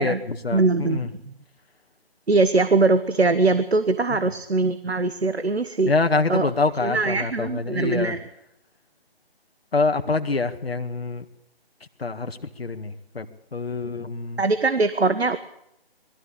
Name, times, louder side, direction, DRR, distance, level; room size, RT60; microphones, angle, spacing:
voice 1, 0.0-1.1 5.9-8.2 9.7-11.2 12.0-13.3 13.5-14.4, left 3 dB, 70° left, 7 dB, 1.8 m, -25 dB
voice 2, 0.5-1.3 2.3-5.9 6.3-6.5 6.8-8.3 14.4-15.4, right 3 dB, 85° right, 11 dB, 1.3 m, -22 dB
22.0 x 13.5 x 8.6 m, 0.80 s
figure-of-eight pair, 150°, 31 cm